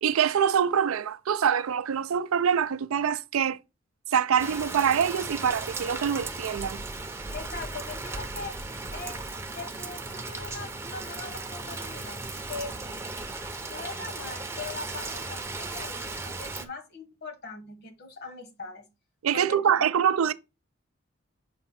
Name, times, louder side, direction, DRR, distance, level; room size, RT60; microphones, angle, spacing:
voice 1, 0.0-3.6 4.1-6.8 19.2-20.3, right 8 dB, 80° right, 0.4 m, -25 dB
Rain, 4.4-16.7, right 3 dB, 10° right, 0.6 m, -36 dB
voice 2, 7.3-8.6 8.9-9.2 9.5-12.7 13.6-18.9 19.3-19.6, left 4 dB, 50° left, 1.2 m, -41 dB
6.7 x 2.7 x 5.5 m
head